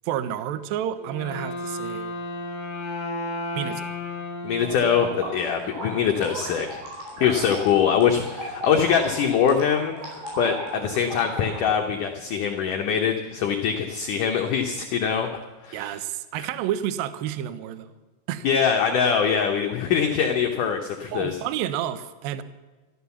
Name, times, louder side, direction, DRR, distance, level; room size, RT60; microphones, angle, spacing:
voice 1, 0.1-2.1 3.6-4.0 15.7-17.9 18.3-18.5 21.1-22.4, right 11 dB, 80° right, 13 dB, 2.1 m, -30 dB
Wind instrument woodwind instrument, 1.0-5.8, left 2 dB, 55° left, 1.0 m, -33 dB
voice 2, 4.4-6.8 7.2-9.9 10.4-15.3 15.6-15.9 16.4-16.5 18.4-21.4, left 7 dB, 85° left, 3 dB, 1.8 m, -23 dB
sound 1, 4.6-11.6, right 1 dB, 60° right, 6.7 m, -36 dB
14.0 x 13.5 x 7.1 m, 1.3 s
omnidirectional pair, 5.3 m